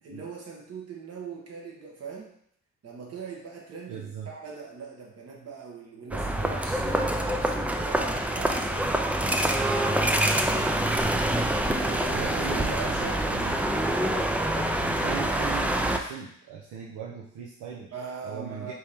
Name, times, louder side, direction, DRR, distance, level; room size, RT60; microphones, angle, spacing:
voice 1, 0.0-2.3 2.8-10.1 11.7-13.3 17.9-18.7, right 5 dB, 55° right, -1 dB, 1.3 m, -41 dB
voice 2, 3.9-4.3 11.6-11.7 12.1-13.6 14.5-17.9 18.2-18.7, right 7 dB, 80° right, -2 dB, 0.7 m, -39 dB
sound 1, 6.1-16.0, right 1 dB, 5° right, 0.3 m, -26 dB
4.5 x 2.9 x 3.4 m, 0.68 s
cardioid pair, 90°, 30 cm